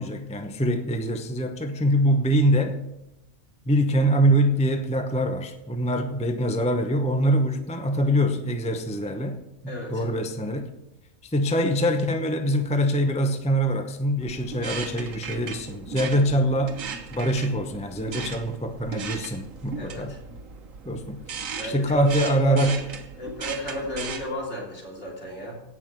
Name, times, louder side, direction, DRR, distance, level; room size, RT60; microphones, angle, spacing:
voice 1, 0.0-2.8 3.7-10.7 11.3-16.8 17.1-20.2 20.8-21.2 21.6-22.8, equal, 5° left, 6 dB, 0.6 m, -24 dB
voice 2, 9.7-10.1 19.8-20.2 21.6-22.8 23.2-25.6, right 2 dB, 60° left, -3 dB, 3.6 m, -32 dB
sound 1, 14.2-24.3, right 6 dB, 75° right, 1.4 m, -37 dB
17.0 x 6.0 x 6.0 m, 0.91 s
omnidirectional pair, 1.4 m